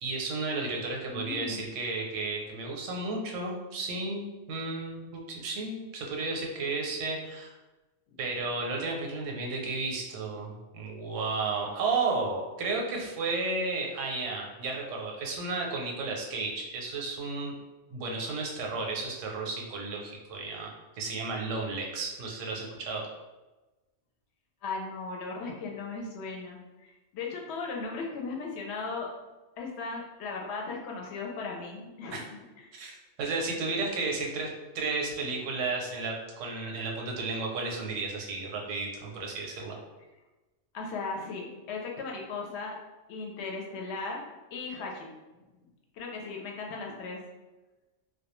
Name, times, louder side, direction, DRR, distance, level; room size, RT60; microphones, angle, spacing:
voice 1, 0.0-7.5 8.2-17.5 17.9-20.7 21.0-23.1 32.1-32.2 32.7-39.8, right 3 dB, 80° right, 0 dB, 0.9 m, -33 dB
voice 2, 1.1-1.6 8.1-8.2 24.6-29.1 29.6-32.7 40.7-42.7 43.1-44.2 44.5-45.1 45.9-47.2, left 4 dB, 70° left, 0 dB, 0.8 m, -37 dB
2.2 x 2.2 x 2.9 m, 1.1 s
omnidirectional pair, 1.3 m